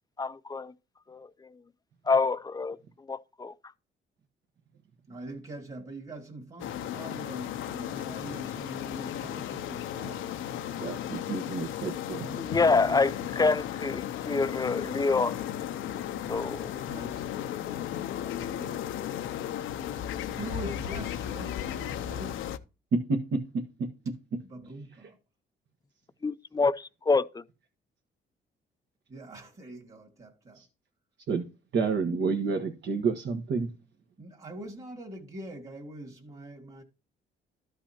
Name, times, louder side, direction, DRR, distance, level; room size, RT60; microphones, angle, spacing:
voice 1, 0.2-0.7 1.1-1.3 2.1-2.8 3.1-3.5 12.1-15.4 16.3-16.7 26.2-27.4, left 4 dB, 20° left, 0.5 m, -27 dB
voice 2, 5.1-10.3 12.8-13.5 16.9-17.3 18.4-18.9 20.2-22.4 24.5-25.2 29.1-30.6 34.2-36.8, right 1 dB, 35° right, 2.2 m, -43 dB
sound 1, 6.6-22.6, left 10 dB, 80° left, 0.7 m, -35 dB
voice 3, 10.8-12.3 23.1-23.4 30.6-30.7 31.3-31.4 31.7-33.7, right 4 dB, 65° right, 1.3 m, -29 dB
13.0 x 5.6 x 2.9 m
cardioid pair, 90°, 20 cm